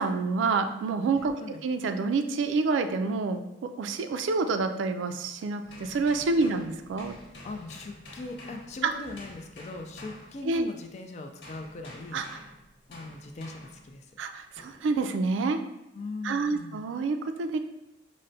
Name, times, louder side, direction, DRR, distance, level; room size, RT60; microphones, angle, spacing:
voice 1, 0.0-1.3 1.6-7.1 8.8-8.9 10.4-10.6 12.1-12.4 14.2-15.6 16.2-17.6, right 4 dB, 80° right, 8 dB, 0.3 m, -28 dB
sound 1, 5.6-10.9 11.4-13.9 14.6-14.9, left 1 dB, 65° left, 1.2 m, -48 dB
voice 2, 7.4-12.2 12.9-14.1 15.9-16.8, left 3 dB, 35° left, 4 dB, 0.3 m, -40 dB
5.2 x 2.1 x 2.6 m, 0.88 s
head